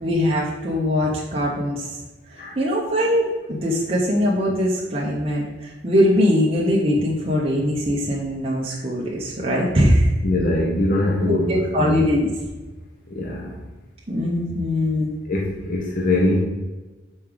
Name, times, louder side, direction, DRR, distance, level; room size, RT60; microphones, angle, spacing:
voice 1, 0.0-2.0 2.3-10.1 11.3-12.3 14.1-15.1, equal, 30° right, -4 dB, 0.9 m, -21 dB
voice 2, 10.2-12.0 13.1-13.6 15.3-16.4, left 1 dB, 50° left, -2 dB, 0.9 m, -22 dB
5.6 x 4.6 x 5.0 m, 1.2 s
head